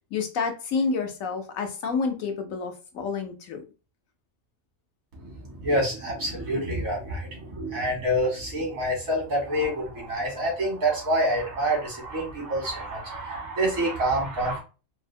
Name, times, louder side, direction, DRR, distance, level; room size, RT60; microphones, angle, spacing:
voice 1, 0.1-3.6, left 5 dB, 75° left, 4 dB, 1.2 m, -29 dB
voice 2, 5.1-14.6, right 1 dB, 85° right, -1 dB, 2.0 m, -27 dB
4.0 x 2.1 x 2.6 m, 0.32 s
omnidirectional pair, 1.4 m